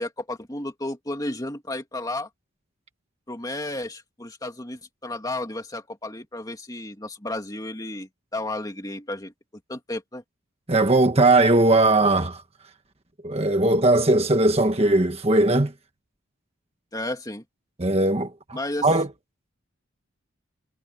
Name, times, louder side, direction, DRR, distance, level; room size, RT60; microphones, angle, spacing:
voice 1, 0.0-2.3 3.3-9.3 9.7-10.2 16.9-17.4 18.5-18.9, left 1 dB, 15° left, 2.7 m, -33 dB
voice 2, 10.7-12.4 13.2-15.7 17.8-19.1, right 2 dB, 30° right, 1.4 m, -19 dB
head